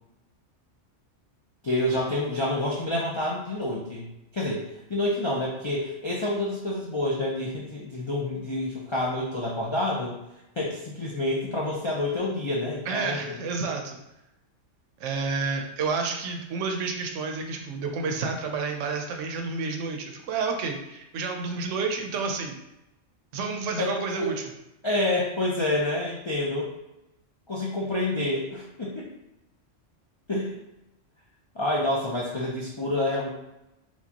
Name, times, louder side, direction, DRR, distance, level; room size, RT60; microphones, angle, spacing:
voice 1, 1.6-4.1 4.3-4.6 4.9-10.2 10.6-13.4 23.8-24.4 24.8-26.7 27.5-29.1 30.3-30.5 31.5-33.3, left 1 dB, 50° left, -4 dB, 0.3 m, -28 dB
voice 2, 12.9-14.0 15.0-22.6 23.3-24.4, right 4 dB, 80° right, 3 dB, 0.9 m, -30 dB
4.5 x 2.3 x 2.8 m, 0.90 s
omnidirectional pair, 1.3 m